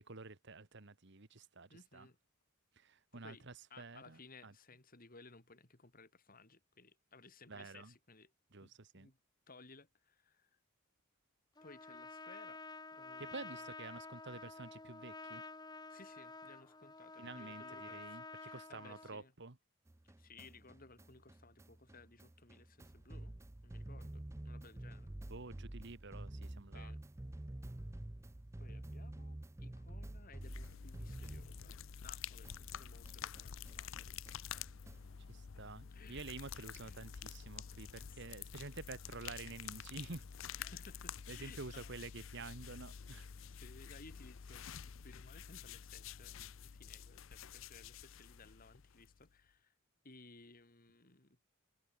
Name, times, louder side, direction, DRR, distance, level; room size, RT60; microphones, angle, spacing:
voice 1, 0.0-2.1 2.7-4.5 7.5-7.9 8.5-9.1 13.2-15.4 17.2-19.6 25.3-26.9 35.3-40.3 41.3-43.3, right 3 dB, 55° right, 1.5 m, -50 dB
voice 2, 1.7-2.2 3.1-3.4 3.7-8.3 8.6-9.2 9.5-10.6 11.6-12.6 12.9-13.6 15.9-19.3 20.0-23.4 23.6-25.1 26.7-27.0 28.6-34.6 35.9-36.3 36.7-37.0 38.0-38.3 40.6-42.0 43.5-49.7 50.0-51.4, left 3 dB, 45° left, 3.0 m, -60 dB
Trumpet, 11.6-19.2, left 3 dB, 20° left, 2.2 m, -50 dB
sound 1, 19.9-32.1 32.4-35.2, right 1 dB, 15° right, 0.5 m, -49 dB
sound 2, 30.4-49.3, left 8 dB, 65° left, 0.6 m, -49 dB
head